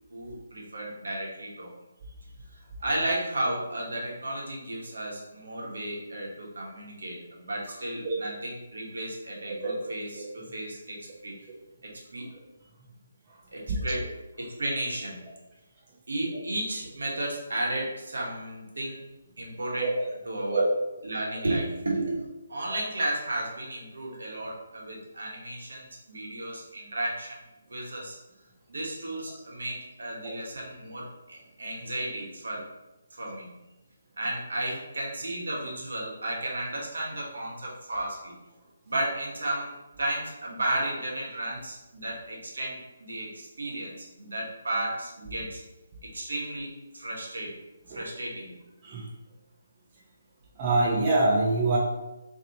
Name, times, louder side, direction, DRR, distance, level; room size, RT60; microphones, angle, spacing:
voice 1, 0.1-1.7 2.8-11.0 11.2-11.3 12.1-12.2 13.5-14.0 14.4-15.2 16.1-19.0 19.4-19.9 20.3-20.6 21.0-27.4 27.7-28.2 28.7-32.6 33.1-33.5 34.2-38.3 38.9-39.7 40.0-45.6 46.1-47.6 47.9-48.6, right 1 dB, 80° right, -3 dB, 1.2 m, -33 dB
voice 2, 50.6-51.8, right 2 dB, 25° right, -5 dB, 0.7 m, -25 dB
2.9 x 2.9 x 4.0 m, 1.0 s
hypercardioid pair, 165°, 0 cm